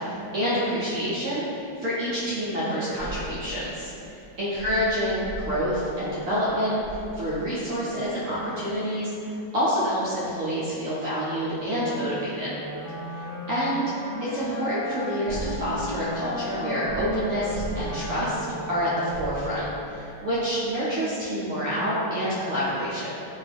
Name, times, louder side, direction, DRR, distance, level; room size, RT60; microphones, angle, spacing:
voice 1, 0.0-4.1 4.4-12.6 13.5-13.8 14.2-23.1, equal, 70° right, -9 dB, 0.8 m, -27 dB
sound 1, 3.0-8.0 15.3-20.2 20.5-20.6, right 2 dB, 75° left, 1.1 m, -40 dB
Wind instrument woodwind instrument, 12.4-19.9, left 1 dB, 25° left, 1.0 m, -36 dB
2.8 x 2.2 x 3.2 m, 2.8 s
omnidirectional pair, 1.9 m